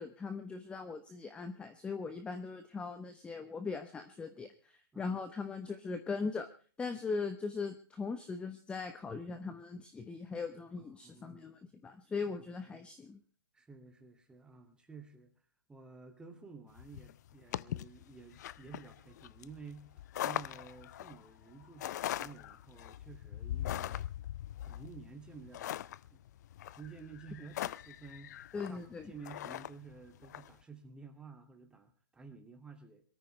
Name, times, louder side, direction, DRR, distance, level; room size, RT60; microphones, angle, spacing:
voice 1, 0.0-6.5 6.8-13.2 28.5-29.1, left 4 dB, 10° left, 9 dB, 1.0 m, -40 dB
voice 2, 10.8-11.5 12.2-12.7 13.5-15.3 15.7-20.0 20.2-24.1 24.6-26.2 26.7-28.4 28.7-33.0, right 5 dB, 5° right, 5 dB, 2.4 m, -52 dB
sound 1, 16.8-30.5, left 12 dB, 45° left, 0.6 m, -41 dB
22.5 x 14.0 x 3.3 m, 0.41 s
hypercardioid pair, 145°, 12 cm